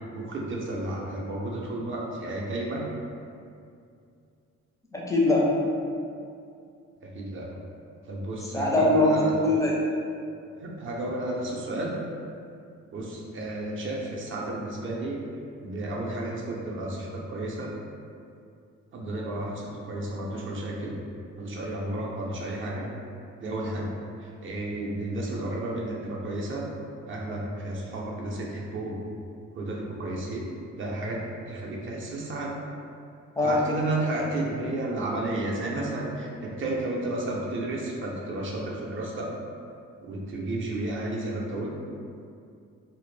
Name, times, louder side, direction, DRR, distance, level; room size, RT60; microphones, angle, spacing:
voice 1, 0.1-2.9 7.0-7.5 8.0-9.3 10.6-11.9 12.9-15.2 15.6-17.7 18.9-21.0 21.4-22.9 23.4-23.9 24.2-26.7 27.1-29.0 29.5-30.5 30.8-32.5 33.4-39.3 40.0-41.7, right 2 dB, 45° right, -2 dB, 0.5 m, -32 dB
voice 2, 4.9-5.5 8.5-9.7 33.4-33.6, left 2 dB, 10° left, -4 dB, 0.4 m, -22 dB
2.0 x 2.0 x 3.1 m, 2.4 s
cardioid pair, 90°, 30 cm